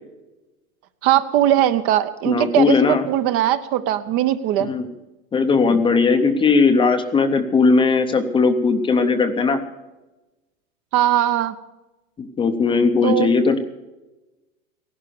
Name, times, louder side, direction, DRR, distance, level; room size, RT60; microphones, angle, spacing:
voice 1, 1.0-4.7 10.9-11.5 13.0-13.3, right 12 dB, 35° right, 11 dB, 0.7 m, -19 dB
voice 2, 2.3-3.0 4.7-4.8 5.3-9.6 12.2-13.6, left 4 dB, 15° left, 8 dB, 0.7 m, -18 dB
15.5 x 11.5 x 6.9 m, 1.1 s
supercardioid pair, 145°, 41 cm